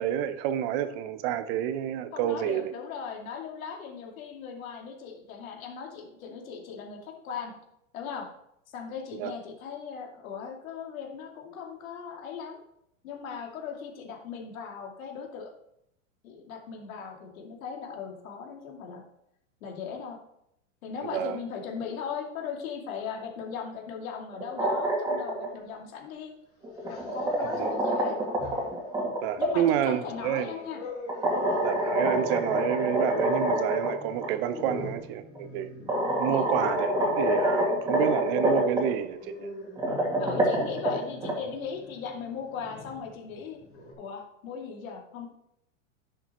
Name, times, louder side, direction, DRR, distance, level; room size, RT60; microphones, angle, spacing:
voice 1, 0.0-2.7 9.1-9.3 21.1-21.4 27.5-27.7 29.2-30.5 31.6-35.7 36.2-39.5, right 10 dB, 45° right, 0.6 m, -29 dB
voice 2, 2.1-7.5 7.9-8.3 8.7-12.6 13.0-15.5 16.2-19.0 19.6-20.2 20.8-26.3 26.9-28.2 29.4-30.8 34.6-34.7 36.3-36.4 40.2-43.6 44.0-45.3, left 6 dB, 75° left, 2.4 m, -38 dB
sound 1, 24.3-25.5 26.6-29.5 31.1-33.9 34.2-34.3 35.4-35.5 35.9-38.8 39.6-41.3, right 1 dB, 10° right, 2.0 m, -27 dB
Growling, 25.7-25.8 26.7-27.8 28.2-28.9 29.4-43.9, left 1 dB, 30° left, 3.0 m, -43 dB
10.5 x 6.9 x 3.0 m
supercardioid pair, 145°, 41 cm